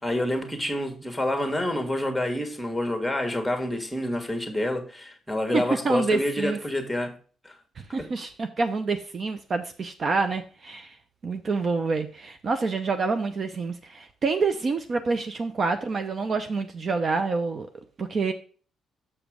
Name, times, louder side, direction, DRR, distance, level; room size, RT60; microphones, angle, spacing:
voice 1, 0.0-7.1 7.4-7.6 8.0-8.1, left 1 dB, 5° left, 1.6 m, -28 dB
voice 2, 5.5-6.6 7.8-11.0 11.2-17.7 18.0-18.3, right 4 dB, 45° right, 0.7 m, -27 dB
7.2 x 5.1 x 4.9 m
cardioid pair, 90°, 0 cm